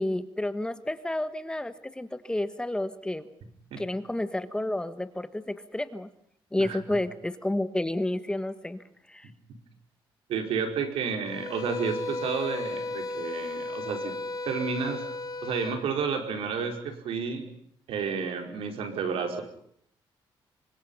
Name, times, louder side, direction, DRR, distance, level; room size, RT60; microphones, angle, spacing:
voice 1, 0.0-3.3 3.8-6.1 6.5-9.3, left 1 dB, 10° left, 11 dB, 1.3 m, -31 dB
voice 2, 10.3-14.1 14.4-15.0 15.4-17.5 17.9-19.4, right 6 dB, 85° right, 5 dB, 5.0 m, -31 dB
sound 1, 11.2-15.8, left 2 dB, 40° left, 3.4 m, -34 dB
27.5 x 24.5 x 5.7 m, 0.68 s
cardioid pair, 130°, 9 cm